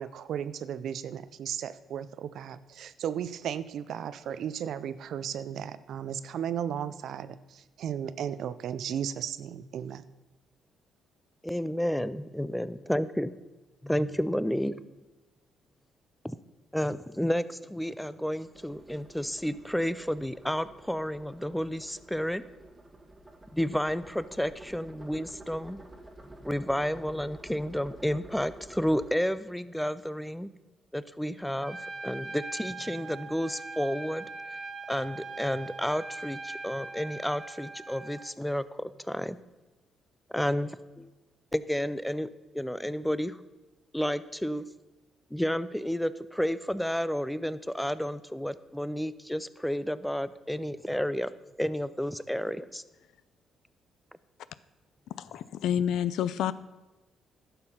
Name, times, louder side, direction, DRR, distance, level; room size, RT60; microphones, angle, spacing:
voice 1, 0.0-10.0, right 9 dB, 70° right, 15 dB, 0.5 m, -35 dB
voice 2, 11.4-13.3 13.8-14.9 16.2-16.4 16.7-22.4 23.5-25.8 26.4-30.5 30.9-31.8 32.0-34.3 34.9-39.4 40.3-41.1 41.5-42.3 42.5-43.4 43.9-44.6 45.3-51.3 51.6-52.8, equal, 5° left, 16 dB, 0.5 m, -31 dB
sound 1, 18.4-29.1, right 1 dB, 15° right, 1.6 m, -51 dB
Trumpet, 31.6-38.3, right 3 dB, 35° right, 1.0 m, -41 dB
voice 3, 55.2-56.5, left 9 dB, 80° left, 16 dB, 0.4 m, -28 dB
11.5 x 6.9 x 5.6 m, 1.1 s
cardioid pair, 90°, 0 cm